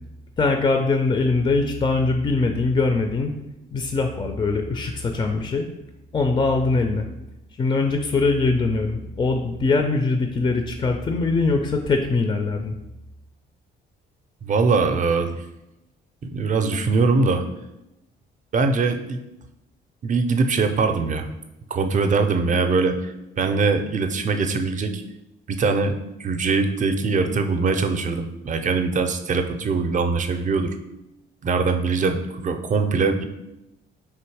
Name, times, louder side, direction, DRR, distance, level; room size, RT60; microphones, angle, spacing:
voice 1, 0.4-3.3 3.7-5.7 6.1-7.1 7.6-12.7, left 3 dB, 25° left, 5 dB, 0.4 m, -22 dB
voice 2, 14.4-15.4 16.2-17.4 18.5-19.2 20.0-21.3 21.7-25.0 25.5-25.9 26.2-30.8 31.4-33.2, right 4 dB, 40° right, 7 dB, 0.5 m, -22 dB
3.5 x 2.8 x 4.6 m, 0.91 s
cardioid pair, 90°, 20 cm